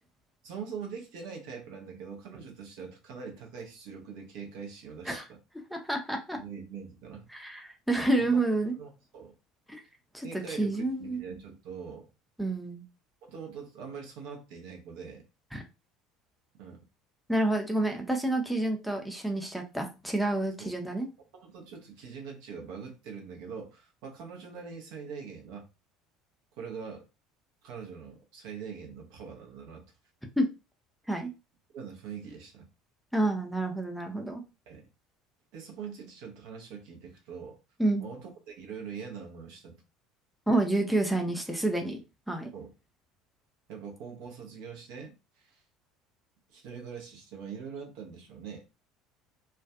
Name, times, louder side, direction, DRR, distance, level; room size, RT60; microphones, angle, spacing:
voice 1, 0.4-5.4 6.4-7.3 8.2-8.5 8.8-9.3 10.2-12.1 13.3-15.2 16.6-16.9 20.6-20.7 21.4-25.7 26.5-27.0 27.6-29.9 31.7-32.7 34.7-34.9 35.5-37.6 38.0-39.8 42.5-42.7 43.7-45.6 46.5-48.6, right 6 dB, 60° right, 0.7 m, -43 dB
voice 2, 5.7-6.4 7.3-8.7 9.7-9.8 10.1-11.2 12.4-12.8 15.5-15.6 17.3-21.1 30.4-30.5 31.1-31.3 33.1-34.4 37.8-38.0 40.5-42.0 42.3-42.5, right 2 dB, ahead, 0.6 m, -29 dB
2.4 x 2.2 x 2.4 m
figure-of-eight pair, 65°, 0 cm